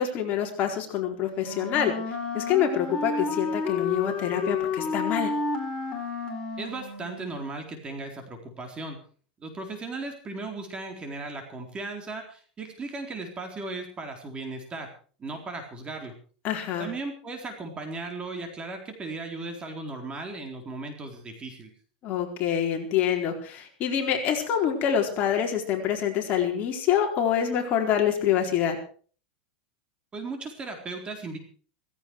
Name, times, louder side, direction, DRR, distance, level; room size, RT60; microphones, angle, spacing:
voice 1, 0.0-5.3 16.4-16.9 22.0-28.8, left 9 dB, 40° left, 2 dB, 4.3 m, -26 dB
Wind instrument woodwind instrument, 1.3-7.3, left 4 dB, 20° left, 4.6 m, -30 dB
voice 2, 6.6-9.0 9.4-14.9 15.2-16.1 16.8-21.7 30.1-31.4, right 3 dB, 20° right, 4 dB, 4.0 m, -36 dB
16.5 x 16.0 x 4.8 m, 0.42 s
supercardioid pair, 130°, 5 cm